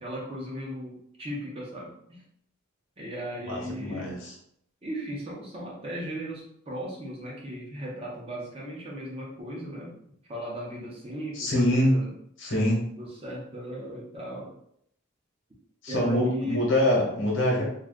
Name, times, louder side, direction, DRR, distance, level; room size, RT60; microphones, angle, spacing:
voice 1, 0.0-2.2 3.0-4.2 4.8-10.0 10.3-12.1 13.0-14.5 15.9-16.7, equal, 25° right, -4 dB, 0.7 m, -36 dB
voice 2, 3.5-4.1 11.3-11.9 12.4-12.9 15.8-17.6, left 1 dB, 65° left, -3 dB, 1.0 m, -24 dB
2.4 x 2.3 x 3.5 m, 0.70 s
head